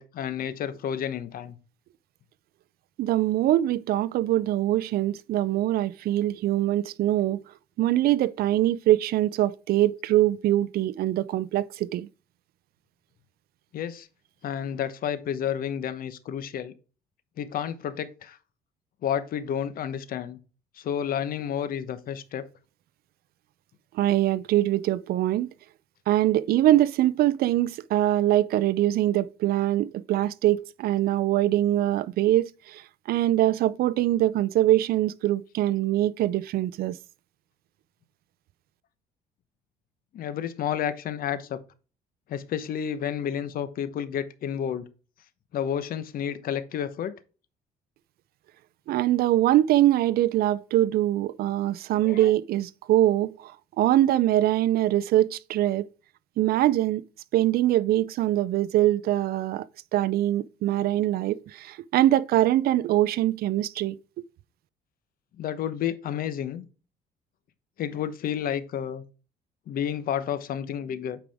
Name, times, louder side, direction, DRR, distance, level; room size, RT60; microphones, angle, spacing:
voice 1, 0.0-1.5 13.7-14.1 14.4-16.7 17.4-18.4 19.0-20.4 20.7-22.4 40.1-41.6 42.3-44.8 45.5-47.1 52.0-52.3 65.4-66.7 67.8-69.0 69.7-71.2, left 9 dB, 60° left, 1.0 m, -30 dB
voice 2, 3.0-7.4 7.8-12.1 23.9-25.5 26.1-32.8 33.1-37.0 48.9-53.5 53.8-55.9 56.4-57.0 57.3-59.6 59.9-64.0, right 14 dB, 65° right, 0.5 m, -23 dB
8.9 x 4.8 x 3.5 m
cardioid pair, 110°, 17 cm